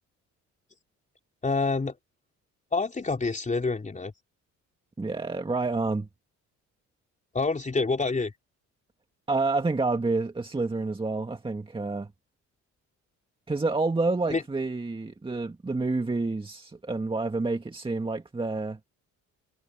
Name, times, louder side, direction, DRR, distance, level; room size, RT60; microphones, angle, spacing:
voice 1, 1.4-2.0 2.7-4.1 7.3-8.3 14.3-14.4, left 3 dB, 25° left, 3.8 m, -27 dB
voice 2, 5.0-6.1 9.3-12.1 13.5-18.8, right 3 dB, 15° right, 1.9 m, -28 dB
cardioid pair, 90°, 30 cm